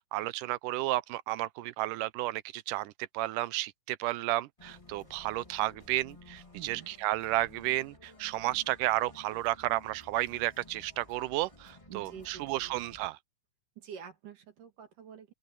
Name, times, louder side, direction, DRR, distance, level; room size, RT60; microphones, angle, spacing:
voice 1, 0.1-13.2, right 17 dB, 80° right, 1.9 m, -32 dB
sound 1, 4.6-13.1, left 2 dB, 10° left, 2.2 m, -55 dB
voice 2, 6.5-6.9 11.9-12.8 13.8-15.3, right 8 dB, 60° right, 3.8 m, -47 dB
open air
omnidirectional pair, 4.2 m